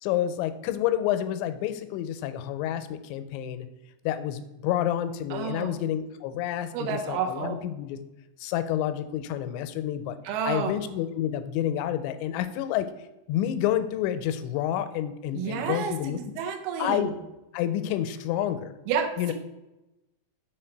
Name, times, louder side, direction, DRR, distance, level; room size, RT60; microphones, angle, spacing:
voice 1, 0.0-3.7 4.1-8.0 8.4-10.2 10.4-12.9 13.3-16.2 16.8-17.1 17.5-18.7 19.2-19.3, left 11 dB, 90° left, 10 dB, 2.8 m, -29 dB
voice 2, 5.3-5.7 6.7-7.6 10.2-10.7 15.3-17.1 18.9-19.3, right 7 dB, 80° right, 3 dB, 2.4 m, -30 dB
6.4 x 3.8 x 4.5 m, 0.98 s
omnidirectional pair, 5.1 m